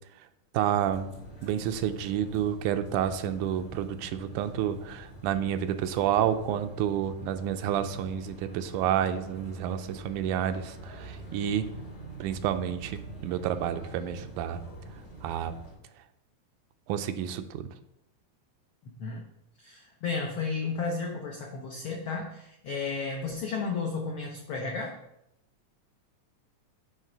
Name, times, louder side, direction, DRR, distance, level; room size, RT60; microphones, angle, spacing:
voice 1, 0.5-1.1 1.4-11.7 12.2-14.6 15.2-15.5 16.9-17.7, right 10 dB, 85° right, 9 dB, 2.0 m, -29 dB
sound 1, 0.9-15.8, right 2 dB, 25° left, 2.0 m, -45 dB
voice 2, 19.6-25.0, left 4 dB, 80° left, 0 dB, 1.1 m, -33 dB
9.2 x 3.3 x 5.1 m, 0.83 s
omnidirectional pair, 3.5 m